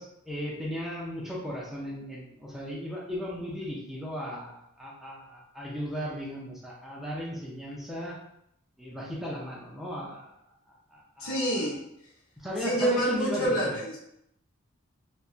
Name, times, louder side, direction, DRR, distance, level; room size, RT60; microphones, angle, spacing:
voice 1, 0.0-8.2 8.8-10.3 10.7-11.7 12.4-13.8, equal, ahead, -5 dB, 0.4 m, -36 dB
voice 2, 11.2-11.8 12.6-14.0, right 1 dB, 70° left, -7 dB, 0.8 m, -27 dB
2.7 x 2.2 x 2.4 m, 0.76 s
head